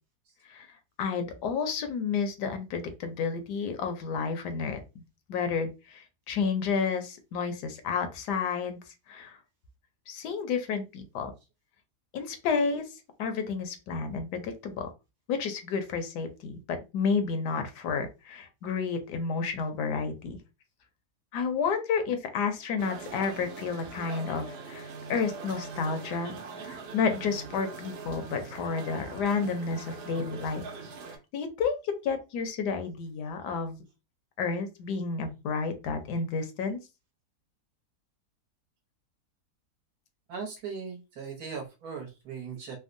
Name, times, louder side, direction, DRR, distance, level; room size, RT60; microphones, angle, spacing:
voice 1, 1.0-4.8 5.3-8.8 9.1-9.4 10.1-11.3 12.1-12.8 13.2-14.9 15.3-16.6 16.9-20.4 21.3-26.3 26.6-30.6 31.1-33.8 34.4-36.8, left 5 dB, 80° left, 7 dB, 1.2 m, -31 dB
sound 1, 22.8-31.2, right 4 dB, 80° right, 1.3 m, -42 dB
voice 2, 40.3-42.8, right 6 dB, 65° right, 1 dB, 1.4 m, -38 dB
3.5 x 2.1 x 2.5 m, 0.27 s
omnidirectional pair, 1.8 m